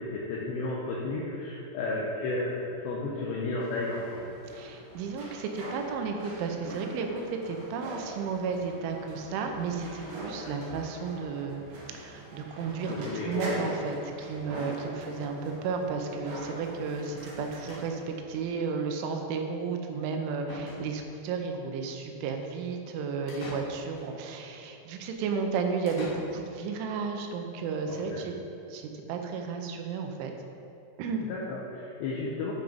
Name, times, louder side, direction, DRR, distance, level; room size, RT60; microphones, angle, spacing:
voice 1, 0.0-4.1 10.3-10.5 12.9-13.6 14.3-14.5 27.9-28.3 31.3-32.5, left 2 dB, 75° left, -4 dB, 2.6 m, -33 dB
sound 1, 3.6-18.2, right 1 dB, 55° right, 2.5 m, -43 dB
voice 2, 4.5-11.7 11.9-28.3 28.7-30.3 31.0-31.3, right 5 dB, 80° right, 4 dB, 3.1 m, -33 dB
sound 2, 10.0-11.0 11.3-11.4 11.7-11.8 12.0-12.1 13.3-13.5 13.8-14.2 15.0-15.1 15.4-15.5 17.2-17.4 17.7-18.2 20.0-20.1 20.5-21.3 23.3-24.2 25.9-26.7, left 2 dB, 55° left, 1.9 m, -46 dB
9.2 x 5.8 x 5.1 m, 2.7 s
omnidirectional pair, 5.7 m